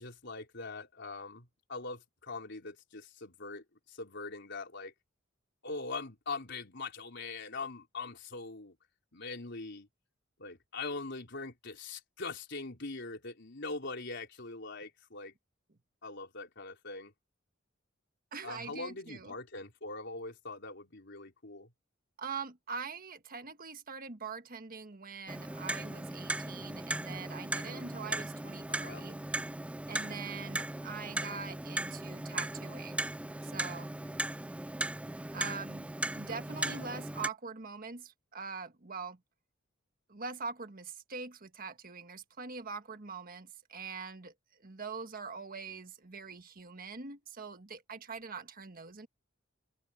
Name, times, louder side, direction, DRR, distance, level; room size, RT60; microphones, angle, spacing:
voice 1, 0.0-4.9 5.6-8.8 9.1-9.9 10.4-15.3 16.0-17.1 18.4-21.7 28.7-29.1 36.5-36.9, left 3 dB, 60° left, 4.4 m, -42 dB
voice 2, 18.3-19.3 22.2-29.2 29.9-33.1 33.4-33.9 35.3-35.9 36.1-39.2 40.1-44.3 44.6-49.1, right 5 dB, 45° right, 1.5 m, -43 dB
Clock, 25.3-37.3, right 2 dB, 5° right, 0.3 m, -37 dB
head